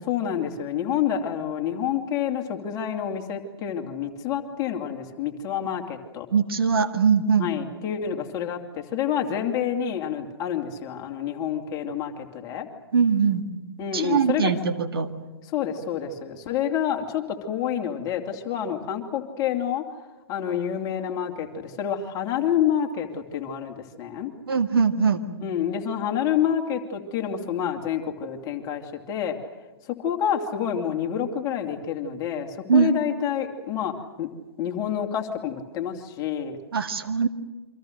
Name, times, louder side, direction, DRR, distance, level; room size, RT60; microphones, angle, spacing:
voice 1, 0.1-6.3 7.4-12.7 13.8-14.5 15.5-19.8 20.3-24.3 25.4-29.4 29.9-34.3 34.6-36.6, left 9 dB, 25° left, 4 dB, 2.8 m, -28 dB
voice 2, 6.3-7.5 12.9-13.4 13.9-15.1 24.5-25.2 32.7-32.9 36.7-37.3, right 6 dB, 65° right, 6 dB, 2.1 m, -21 dB
28.5 x 25.0 x 6.6 m, 1.2 s
figure-of-eight pair, 120°, 13 cm